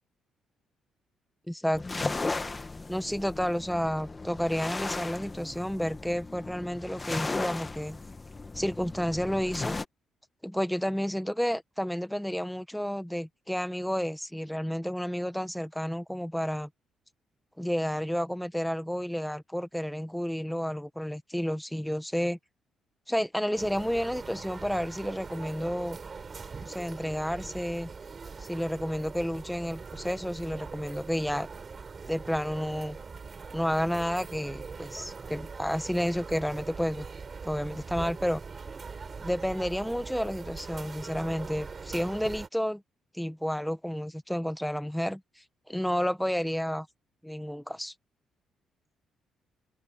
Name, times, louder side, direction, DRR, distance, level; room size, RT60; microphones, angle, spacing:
voice 1, 1.5-2.1 2.9-8.0 8.5-9.8 10.4-16.7 17.6-22.4 23.1-26.0 26.6-27.9 28.4-31.5 32.1-33.0 33.5-37.1 37.4-38.4 39.2-42.8 43.1-45.2 45.7-46.9 47.2-47.9, equal, ahead, 1.4 m, -31 dB
sound 1, 1.7-9.8, left 3 dB, 20° left, 1.5 m, -36 dB
sound 2, 23.6-42.5, right 5 dB, 35° right, 7.6 m, -42 dB
open air
cardioid pair, 115°, 0 cm